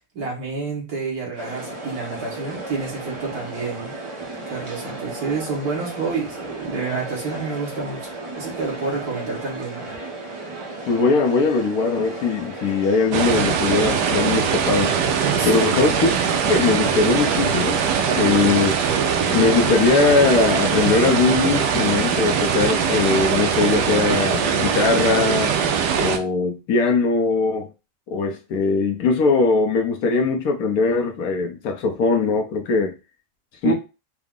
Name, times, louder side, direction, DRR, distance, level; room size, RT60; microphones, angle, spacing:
voice 1, 0.1-4.0 4.5-10.0 15.3-15.8 18.4-18.5 33.6-33.7, right 4 dB, 65° right, 1.9 m, -29 dB
sound 1, 1.4-20.3, right 2 dB, 45° right, 0.4 m, -35 dB
voice 2, 10.9-14.9 15.4-16.1 16.4-17.8 18.1-18.7 19.3-25.5 26.0-27.7 28.1-32.9 33.6-33.7, left 4 dB, 70° left, 1.1 m, -20 dB
sound 2, 13.1-26.2, right 7 dB, 80° right, 1.2 m, -21 dB
4.7 x 2.0 x 3.6 m
omnidirectional pair, 1.8 m